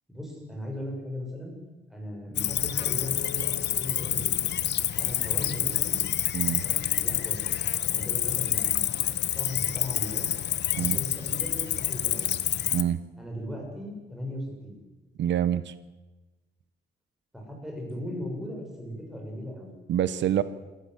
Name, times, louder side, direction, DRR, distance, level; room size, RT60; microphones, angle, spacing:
voice 1, 0.1-1.6 1.9-4.5 5.0-6.0 6.4-7.4 7.8-10.3 10.7-12.3 13.2-14.8 17.3-19.7 20.3-20.4, left 1 dB, ahead, -1 dB, 6.7 m, -38 dB
Cricket, 2.4-12.8, left 11 dB, 70° left, 1.2 m, -28 dB
voice 2, 6.3-6.6 10.8-11.0 12.7-13.0 15.2-15.7 19.9-20.4, right 10 dB, 85° right, 14 dB, 1.1 m, -26 dB
27.0 x 15.5 x 8.0 m, 1.1 s
wide cardioid pair, 180°, 18 cm